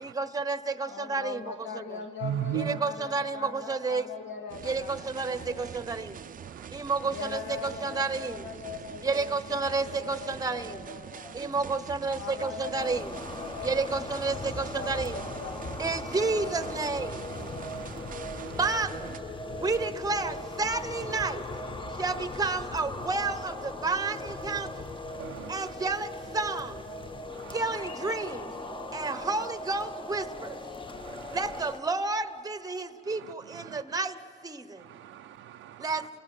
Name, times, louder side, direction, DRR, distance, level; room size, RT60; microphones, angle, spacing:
voice 1, 0.0-2.0 2.5-4.1 4.6-6.2 6.7-8.5 9.0-10.8 11.3-13.1 13.6-15.2 15.8-17.3 18.6-19.1 19.6-21.5 21.9-24.9 25.5-26.8 27.5-28.5 28.9-30.6 31.3-34.9 35.8-36.2, right 3 dB, 20° right, 13 dB, 1.0 m, -31 dB
voice 2, 0.9-5.9 7.1-11.4 12.1-15.8, left 5 dB, 70° left, 4 dB, 2.3 m, -41 dB
voice 3, 2.2-2.8 6.4-6.7 17.6-18.6 25.1-25.7 27.3-27.6 29.0-29.2 31.0-31.4 33.1-33.8 34.8-36.1, right 11 dB, 80° right, 5 dB, 0.6 m, -38 dB
sound 1, 4.5-19.2, right 8 dB, 45° right, 0.6 m, -44 dB
sound 2, 12.8-31.8, left 1 dB, 25° left, 1.4 m, -39 dB
29.5 x 17.0 x 9.0 m, 2.7 s
cardioid pair, 90°, 20 cm